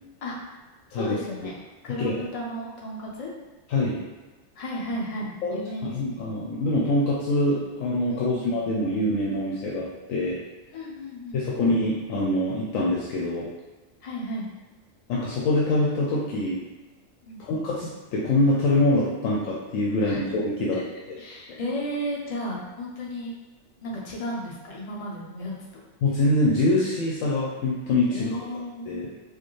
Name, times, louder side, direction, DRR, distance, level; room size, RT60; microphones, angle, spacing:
voice 1, 0.9-1.5 1.8-3.3 4.6-6.2 8.1-8.5 10.7-11.5 14.0-14.5 17.2-17.4 20.0-20.2 20.7-20.8 21.2-23.3 23.8-25.5 28.1-29.0, equal, 35° left, -3 dB, 0.6 m, -34 dB
voice 2, 3.7-4.0 5.4-10.4 11.3-13.5 15.1-16.6 17.4-20.8 26.0-28.4 28.9-29.1, left 2 dB, 80° left, -5 dB, 1.0 m, -24 dB
4.7 x 2.1 x 3.1 m, 1.2 s
omnidirectional pair, 1.4 m